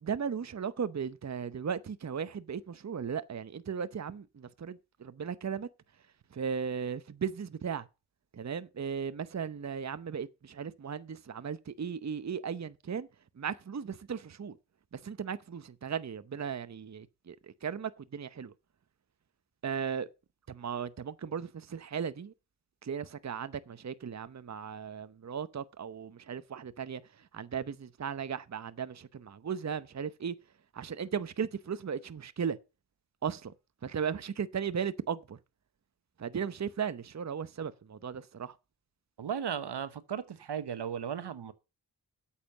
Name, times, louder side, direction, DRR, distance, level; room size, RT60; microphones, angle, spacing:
voice 1, 0.0-5.7 6.3-7.9 8.3-13.1 13.4-14.6 14.9-18.5 19.6-20.1 20.5-22.3 22.8-27.0 27.3-30.3 30.7-32.6 33.2-33.5 33.8-35.4 36.2-38.5, right 7 dB, 40° right, 0.8 m, -36 dB
voice 2, 39.2-41.5, right 8 dB, 75° right, 1.1 m, -36 dB
8.5 x 7.4 x 6.5 m
cardioid pair, 50°, 41 cm